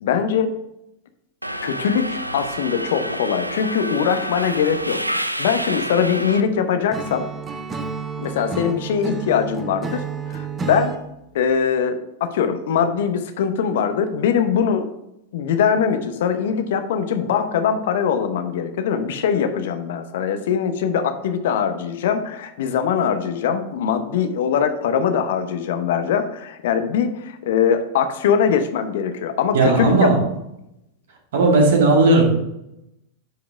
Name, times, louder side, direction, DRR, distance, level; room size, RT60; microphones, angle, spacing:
voice 1, 0.0-0.5 1.6-5.0 5.4-7.3 8.2-10.0 10.3-11.0 11.3-14.9 15.3-30.1, left 7 dB, 55° left, 9 dB, 0.9 m, -22 dB
Subway metro underground, 1.4-6.4, equal, 90° right, 0.4 m, -28 dB
Acoustic guitar / Strum, 6.9-11.0, right 6 dB, 20° right, 0.8 m, -30 dB
voice 2, 29.5-30.2 31.3-32.2, right 3 dB, 60° right, 1 dB, 2.0 m, -15 dB
10.0 x 5.1 x 3.5 m, 0.84 s
figure-of-eight pair, 90°, 0 cm